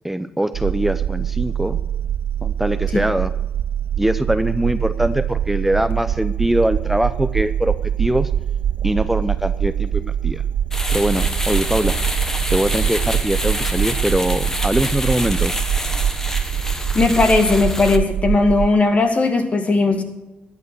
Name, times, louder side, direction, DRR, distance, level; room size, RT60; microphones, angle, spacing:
voice 1, 0.0-1.8 2.4-3.3 4.0-8.3 8.8-10.4 10.9-12.0 12.5-15.6, right 1 dB, 5° right, 12 dB, 0.6 m, -22 dB
sound 1, 0.5-18.7, right 9 dB, 70° right, 0.4 m, -23 dB
sound 2, 10.7-18.0, left 1 dB, 15° left, 1.3 m, -27 dB
voice 2, 16.9-20.0, left 3 dB, 35° left, 6 dB, 2.2 m, -17 dB
13.5 x 9.6 x 6.2 m, 1.0 s
cardioid pair, 85°, 4 cm